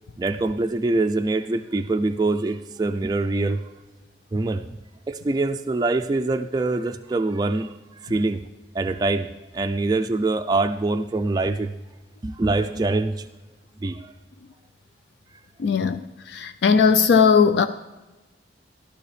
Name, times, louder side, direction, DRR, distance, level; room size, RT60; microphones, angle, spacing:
voice 1, 0.2-3.6 4.3-4.6 5.1-7.7 8.0-8.4 8.7-9.3 9.5-11.7 12.2-13.3 13.8-14.1, right 2 dB, 20° right, 0.3 m, -24 dB
voice 2, 15.6-16.0 16.3-17.7, left 6 dB, 65° left, 0.4 m, -18 dB
15.0 x 11.5 x 3.3 m
head